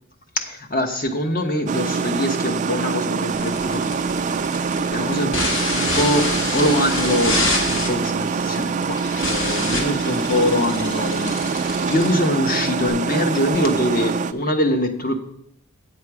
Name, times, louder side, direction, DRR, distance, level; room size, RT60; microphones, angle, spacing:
voice 1, 0.3-3.9 4.9-5.5 5.7-15.2, left 1 dB, 40° left, 5 dB, 1.1 m, -23 dB
sound 1, 1.7-14.3, right 5 dB, 35° right, 0.3 m, -24 dB
sound 2, 3.3-12.9, left 2 dB, 60° left, 2.1 m, -27 dB
8.8 x 7.5 x 4.7 m, 0.70 s
head